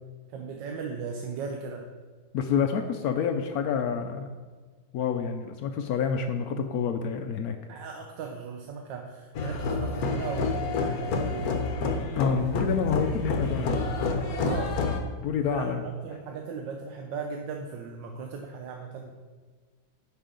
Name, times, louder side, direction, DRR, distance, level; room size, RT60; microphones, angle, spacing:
voice 1, 0.3-1.9 7.7-11.6 14.2-14.8 15.5-19.1, right 5 dB, 75° right, 3 dB, 1.3 m, -37 dB
voice 2, 2.3-4.3 4.9-7.6 12.2-13.8 15.2-15.8, left 6 dB, 75° left, 6 dB, 0.8 m, -28 dB
sound 1, 9.3-15.0, left 3 dB, 60° left, 1.1 m, -29 dB
10.0 x 5.5 x 3.8 m, 1.4 s
omnidirectional pair, 2.0 m